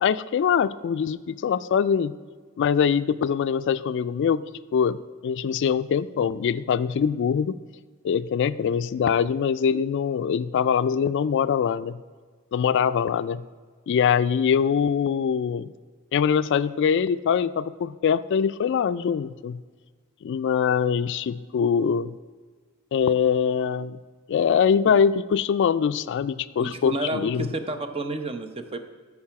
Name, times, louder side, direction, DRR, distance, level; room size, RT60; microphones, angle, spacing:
voice 1, 0.0-2.2 2.6-4.4 4.7-7.6 8.0-12.0 12.5-13.4 13.9-15.7 16.1-19.6 20.2-22.1 22.9-24.0 24.3-27.5, left 7 dB, 60° left, 14 dB, 0.3 m, -23 dB
voice 2, 26.6-28.9, right 2 dB, 25° right, 8 dB, 0.7 m, -30 dB
13.0 x 4.8 x 5.8 m, 1.5 s
head